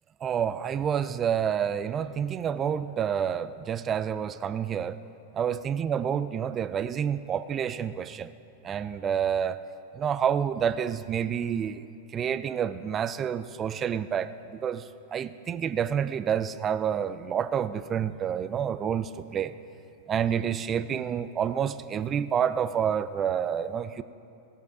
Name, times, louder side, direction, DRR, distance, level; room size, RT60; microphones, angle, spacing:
voice 1, 0.2-5.0 5.3-8.3 8.6-9.6 10.0-11.9 12.1-14.8 15.1-19.5 20.1-24.0, right 8 dB, 30° right, 13 dB, 0.4 m, -28 dB
16.5 x 7.0 x 4.8 m, 2.6 s
figure-of-eight pair, 95°, 0 cm